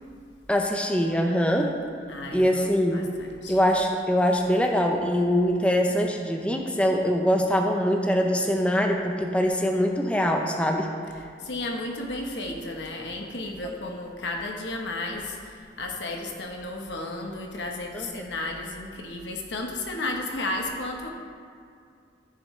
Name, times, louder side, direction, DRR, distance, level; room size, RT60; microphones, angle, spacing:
voice 1, 0.5-1.8 2.3-3.1 3.5-10.9 17.9-18.2, equal, 5° left, 2 dB, 0.5 m, -23 dB
voice 2, 2.1-3.6 11.4-21.1, left 2 dB, 80° left, 1 dB, 1.1 m, -33 dB
13.5 x 6.8 x 3.2 m, 2.3 s
head